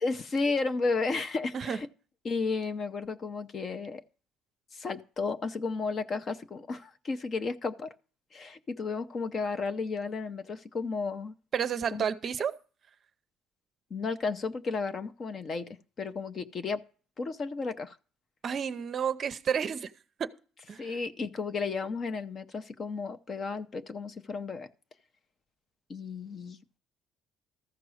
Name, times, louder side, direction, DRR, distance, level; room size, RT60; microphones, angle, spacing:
voice 1, 0.0-1.9 2.2-4.0 4.7-7.9 8.3-11.3 11.9-12.1 13.9-15.7 16.0-16.8 17.2-18.0 20.8-24.7 25.9-26.6, left 4 dB, 30° left, 0.6 m, -33 dB
voice 2, 11.5-12.6 18.4-19.9 20.2-20.3 20.7-21.0, right 7 dB, 35° right, 0.6 m, -31 dB
14.0 x 6.0 x 6.3 m
cardioid pair, 160°, 0 cm